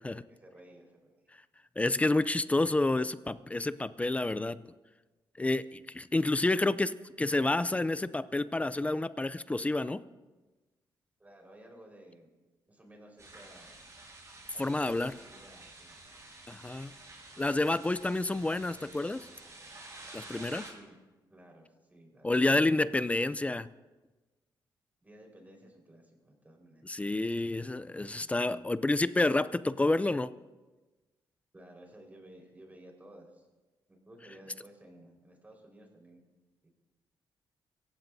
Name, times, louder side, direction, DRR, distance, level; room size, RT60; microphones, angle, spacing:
voice 1, 0.0-1.2 11.2-12.3 12.7-13.8 14.5-16.0 20.5-21.0 21.3-22.6 25.0-26.9 27.4-27.5 28.1-28.5 31.5-33.5 33.9-36.2 36.6-36.7, right 1 dB, 20° right, 0 dB, 4.6 m, -55 dB
voice 2, 1.8-4.6 5.4-10.0 14.6-15.1 16.5-16.9 17.4-19.3 20.1-20.7 22.2-23.7 26.9-30.3, left 2 dB, 15° left, 16 dB, 0.5 m, -29 dB
sound 1, 13.2-20.7, right 2 dB, 35° right, 6.7 m, -50 dB
25.5 x 15.5 x 2.7 m, 1.2 s
cardioid pair, 100°, 8 cm